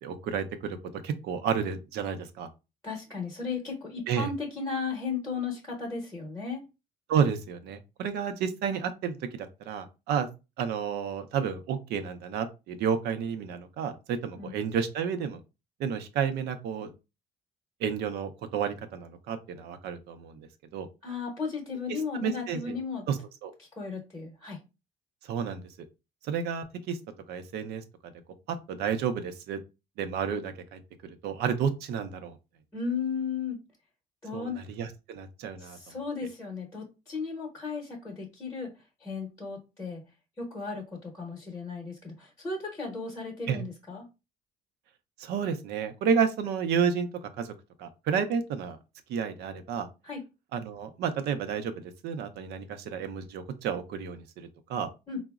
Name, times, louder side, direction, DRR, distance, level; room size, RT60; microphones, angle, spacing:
voice 1, 0.0-0.8 1.0-2.5 4.1-4.3 7.1-10.3 10.6-15.4 15.8-16.9 17.8-20.5 20.7-20.9 21.9-22.8 23.1-23.5 25.3-25.6 26.3-27.0 27.3-27.8 28.5-29.6 30.0-32.4 34.3-35.8 43.5-43.6 45.2-47.5 47.8-48.8 49.1-49.9 50.5-54.9, right 7 dB, 75° right, 8 dB, 0.5 m, -31 dB
voice 2, 2.8-6.6 14.3-14.5 21.0-23.0 23.8-24.6 32.7-33.6 34.2-34.6 35.6-38.7 39.0-40.0 40.4-44.0 50.0-50.2 55.1-55.2, left 5 dB, 15° left, -1 dB, 0.8 m, -35 dB
3.8 x 2.0 x 2.3 m, 0.27 s
cardioid pair, 110°, 17 cm